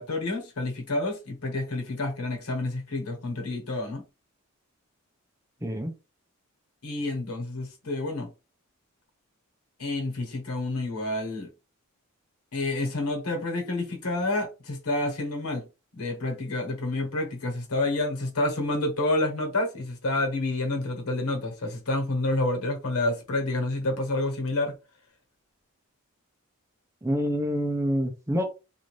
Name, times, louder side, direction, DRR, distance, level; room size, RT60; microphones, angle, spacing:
voice 1, 0.0-4.0 6.8-8.3 9.8-11.5 12.5-15.7 15.9-24.7, left 2 dB, 85° left, 1.2 m, -29 dB
voice 2, 5.6-5.9 27.0-28.4, equal, 15° right, 0.5 m, -27 dB
2.5 x 2.5 x 3.2 m
head